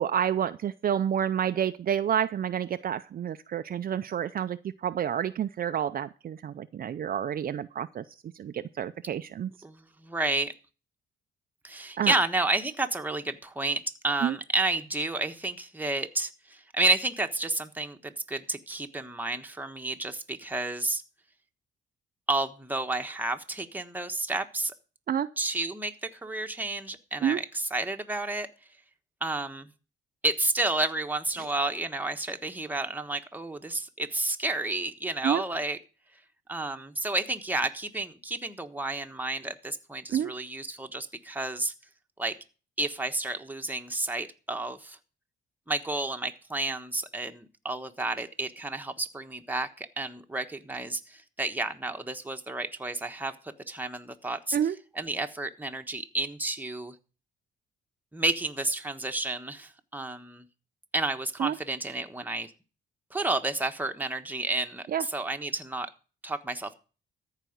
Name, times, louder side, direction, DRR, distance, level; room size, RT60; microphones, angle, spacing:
voice 1, 0.0-8.0 8.3-9.5 12.0-12.2 14.2-14.4 25.1-25.3 27.2-27.4 31.4-31.5 35.2-35.4 40.1-40.3 54.5-54.8 61.4-61.6 64.9-65.0, right 9 dB, 45° right, 10 dB, 0.5 m, -29 dB
voice 2, 9.6-10.5 11.6-21.0 22.3-24.7 25.4-28.5 29.2-29.7 30.2-35.8 36.5-41.7 42.2-42.4 42.8-45.0 45.7-54.6 54.9-56.9 58.1-60.4 60.9-62.5 63.1-65.9 66.2-66.8, right 2 dB, 10° right, 5 dB, 1.3 m, -31 dB
14.0 x 4.9 x 8.0 m, 0.36 s
cardioid pair, 90°, 20 cm